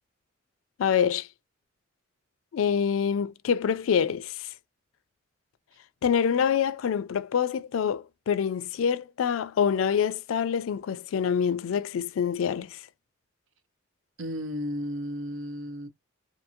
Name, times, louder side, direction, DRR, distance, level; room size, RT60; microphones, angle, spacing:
voice 1, 0.8-1.3 2.5-4.5 6.0-12.9, left 7 dB, 90° left, 0.4 m, -26 dB
voice 2, 14.2-15.9, equal, 80° right, 0.7 m, -33 dB
2.6 x 2.6 x 2.7 m
head